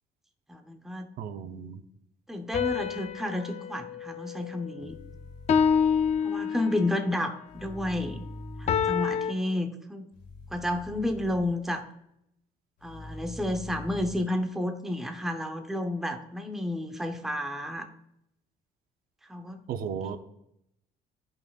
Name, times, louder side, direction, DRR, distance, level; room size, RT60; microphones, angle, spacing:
voice 1, 0.5-1.1 2.3-5.0 6.2-8.2 8.6-10.1 10.5-11.8 12.8-17.9 19.3-19.6, left 1 dB, ahead, 5 dB, 0.7 m, -31 dB
voice 2, 1.2-1.8 19.7-20.2, right 7 dB, 60° right, 9 dB, 0.6 m, -35 dB
sound 1, 2.5-4.9 5.5-7.0 8.7-9.3, left 7 dB, 40° left, 0.5 m, -27 dB
sound 2, 4.8-6.1 7.5-8.8 10.1-11.5 12.8-14.1, left 1 dB, 80° left, 2.0 m, -43 dB
12.0 x 5.4 x 2.4 m, 0.79 s
cardioid pair, 110°, 17 cm